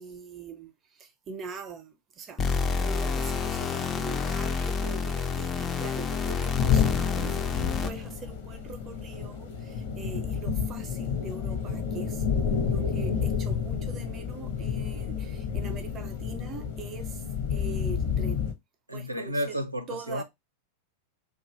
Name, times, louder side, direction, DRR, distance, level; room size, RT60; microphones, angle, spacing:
voice 1, 0.0-2.5 2.8-17.2 17.5-18.5 18.9-19.6 19.9-20.2, right 5 dB, 30° right, 0.6 m, -43 dB
sound 1, 2.4-8.1, left 5 dB, 20° left, 0.4 m, -29 dB
sound 2, 6.6-18.5, left 7 dB, 55° left, 0.8 m, -30 dB
voice 2, 18.9-20.2, equal, 85° right, 0.4 m, -32 dB
2.4 x 2.2 x 3.0 m
figure-of-eight pair, 90°, 0 cm